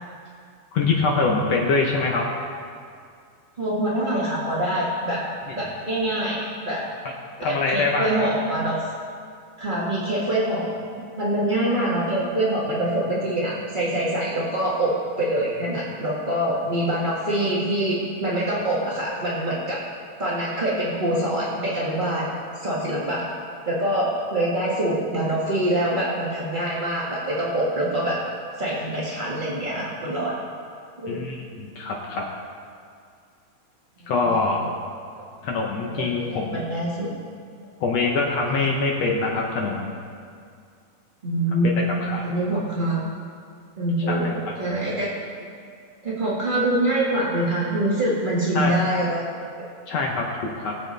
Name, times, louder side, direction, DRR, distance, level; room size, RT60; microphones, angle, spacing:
voice 1, 0.7-2.3 7.4-8.3 31.1-32.2 34.1-34.6 35.4-36.6 37.8-39.9 42.0-42.2 44.1-44.2 48.5-48.8 49.9-50.7, left 3 dB, 75° left, -1 dB, 1.5 m, -24 dB
voice 2, 3.6-5.2 5.5-6.8 7.5-8.8 9.6-10.8 11.1-19.8 20.2-23.3 23.6-28.2 28.6-30.4 31.0-31.2 34.0-34.1 35.1-35.2 35.8-37.1 41.2-43.1 43.8-45.1 46.0-49.3, right 1 dB, 65° right, -7 dB, 0.5 m, -25 dB
21.5 x 7.5 x 3.4 m, 2.3 s
omnidirectional pair, 4.2 m